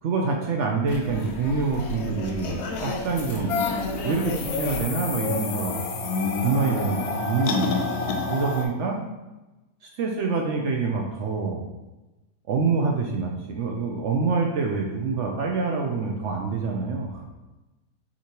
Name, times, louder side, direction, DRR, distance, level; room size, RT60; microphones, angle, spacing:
voice 1, 0.0-3.6 4.0-5.8 6.1-9.0 9.8-11.6 12.5-17.2, right 4 dB, 65° right, 0 dB, 0.8 m, -26 dB
sound 1, 0.9-6.0, left 2 dB, 60° left, 0.7 m, -34 dB
sound 2, 3.5-8.7, left 5 dB, 90° left, 1.2 m, -28 dB
voice 2, 5.9-7.3, equal, 10° left, -7 dB, 1.0 m, -37 dB
5.9 x 2.9 x 2.9 m, 1.1 s
omnidirectional pair, 1.6 m